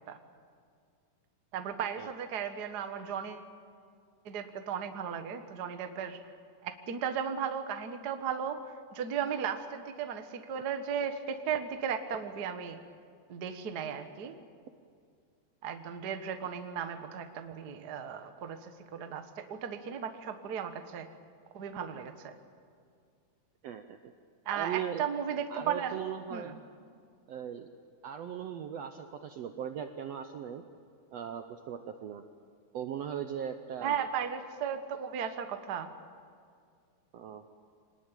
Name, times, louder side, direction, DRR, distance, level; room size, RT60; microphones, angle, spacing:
voice 1, 1.5-3.4 4.2-6.2 6.6-8.6 8.9-12.8 13.3-14.4 15.6-21.1 21.5-22.3 24.4-26.0 26.3-26.6 33.8-35.9, right 7 dB, 55° right, 7 dB, 1.1 m, -35 dB
voice 2, 23.6-24.0 24.5-25.0 25.5-26.5 27.3-27.7 28.0-30.6 31.1-32.2 32.7-34.0 37.1-37.4, right 9 dB, 70° right, 7 dB, 1.6 m, -38 dB
25.0 x 19.5 x 9.0 m, 2.3 s
omnidirectional pair, 3.9 m